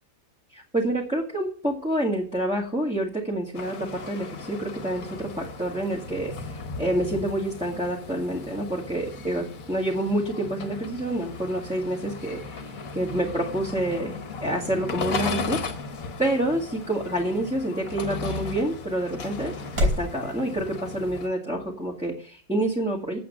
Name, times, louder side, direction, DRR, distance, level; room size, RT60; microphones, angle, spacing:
voice 1, 0.5-15.6 16.2-19.5 19.8-23.2, right 1 dB, 5° right, -3 dB, 2.0 m, -28 dB
sound 1, 3.5-21.3, left 4 dB, 55° left, 1.6 m, -36 dB
sound 2, 13.9-20.1, left 1 dB, 90° right, 4.3 m, -35 dB
8.5 x 7.9 x 7.4 m, 0.42 s
omnidirectional pair, 1.7 m